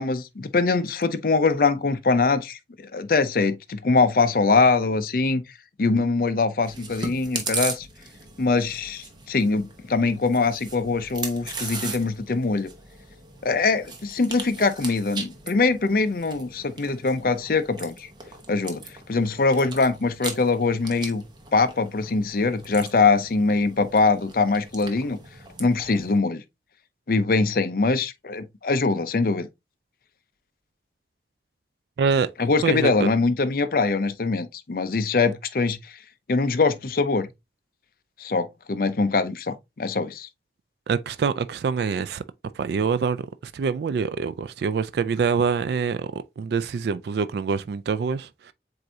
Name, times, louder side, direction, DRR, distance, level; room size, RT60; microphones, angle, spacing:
voice 1, 0.0-5.4 5.8-7.9 8.4-12.7 13.4-18.1 18.5-18.8 19.1-21.2 21.5-25.2 25.6-26.4 27.1-29.5 32.4-35.8 36.3-37.3 38.2-40.3, left 3 dB, 55° left, 0.5 m, -23 dB
Chewing mastication, 6.6-26.2, right 4 dB, 25° right, 0.9 m, -38 dB
voice 2, 32.0-32.3 32.6-33.1 40.9-42.2 42.6-43.2 43.5-48.5, right 5 dB, 65° right, 0.3 m, -25 dB
7.6 x 2.6 x 2.7 m
head